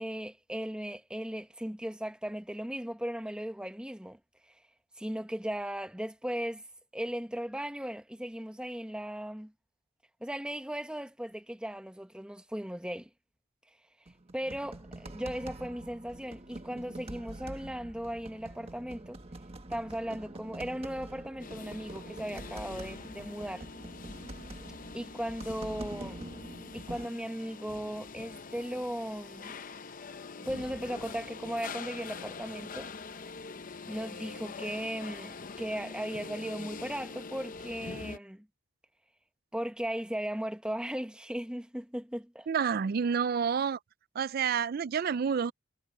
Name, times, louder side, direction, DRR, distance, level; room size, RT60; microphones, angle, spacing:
voice 1, 0.0-4.2 5.0-6.6 6.9-9.5 10.2-13.1 14.3-19.2 19.7-23.7 24.9-26.2 26.7-29.6 30.4-32.9 33.9-38.5 39.5-42.5, equal, 5° right, 1.0 m, -37 dB
sound 1, 14.1-27.1, right 1 dB, 30° right, 1.4 m, -45 dB
sound 2, 21.4-38.2, left 4 dB, 40° left, 0.6 m, -44 dB
voice 2, 42.5-43.8 44.1-45.5, right 6 dB, 45° right, 0.4 m, -29 dB
head